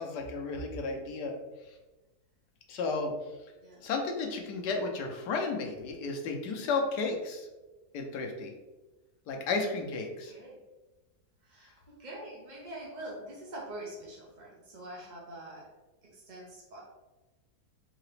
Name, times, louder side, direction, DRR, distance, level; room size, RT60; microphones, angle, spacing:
voice 1, 0.0-1.4 2.7-3.1 3.8-7.5 7.9-8.5 9.3-10.3, left 3 dB, 90° left, 2 dB, 1.3 m, -33 dB
voice 2, 10.3-10.6 11.5-11.7 12.0-15.7 16.1-16.8, right 1 dB, 55° right, -4 dB, 0.5 m, -44 dB
3.8 x 2.8 x 3.2 m, 1.1 s
omnidirectional pair, 1.7 m